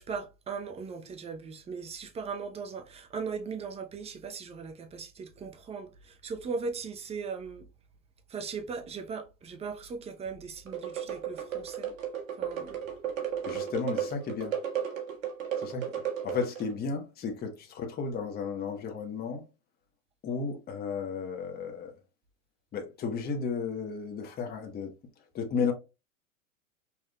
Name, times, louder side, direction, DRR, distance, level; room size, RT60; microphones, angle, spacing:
voice 1, 0.0-7.7 8.3-11.9 12.4-12.8, right 5 dB, 15° right, 0.6 m, -38 dB
sound 1, 10.7-16.7, right 9 dB, 80° right, 1.5 m, -34 dB
voice 2, 13.4-14.6 15.6-15.9 16.2-19.4 20.2-21.9 22.7-24.9 25.3-25.7, left 5 dB, 25° left, 1.1 m, -33 dB
5.7 x 2.5 x 2.2 m
hypercardioid pair, 105°, 39 cm